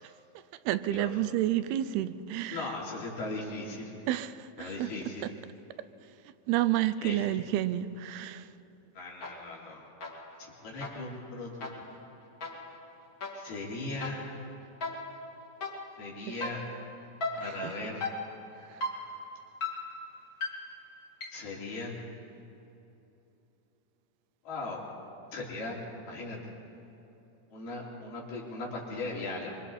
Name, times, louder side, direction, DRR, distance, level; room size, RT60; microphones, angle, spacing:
voice 1, 0.7-2.7 4.1-4.9 6.5-8.4 17.4-17.7, right 13 dB, 90° right, 2.6 m, -30 dB
voice 2, 2.5-3.9 4.6-5.3 7.0-7.2 9.0-9.8 10.4-11.7 13.4-14.3 16.0-16.7 17.4-18.1 21.3-22.0 24.5-24.9 25.3-25.8 26.1-26.5 27.5-29.6, left 2 dB, 80° left, 5.3 m, -38 dB
sound 1, 9.2-9.7 10.0-21.6, left 2 dB, 35° left, 2.9 m, -39 dB
25.5 x 24.5 x 4.3 m
omnidirectional pair, 4.4 m